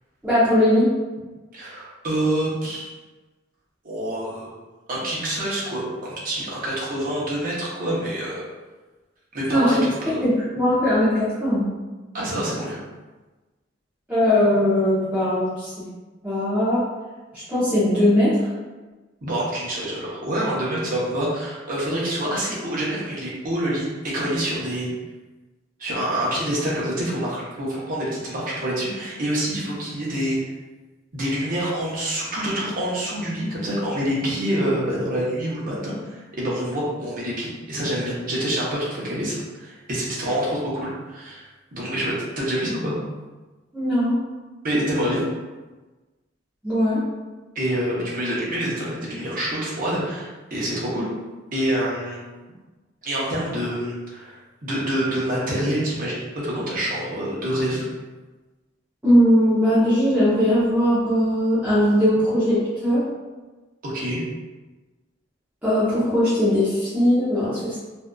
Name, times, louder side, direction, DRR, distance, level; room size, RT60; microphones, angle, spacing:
voice 1, 0.2-0.9 9.5-9.8 10.2-11.7 14.1-15.7 16.2-16.8 17.3-18.5 43.7-44.1 46.6-47.0 59.0-63.0 65.6-67.8, equal, 10° right, -13 dB, 0.6 m, -19 dB
voice 2, 1.5-2.9 3.8-4.5 4.9-8.4 9.3-10.2 12.1-12.8 19.2-24.9 25.8-30.4 31.1-41.4 41.7-43.0 44.6-45.2 47.5-51.1 51.5-52.2 53.0-57.9 63.8-64.2, right 1 dB, 45° right, -6 dB, 0.7 m, -26 dB
2.6 x 2.3 x 2.2 m, 1.2 s
head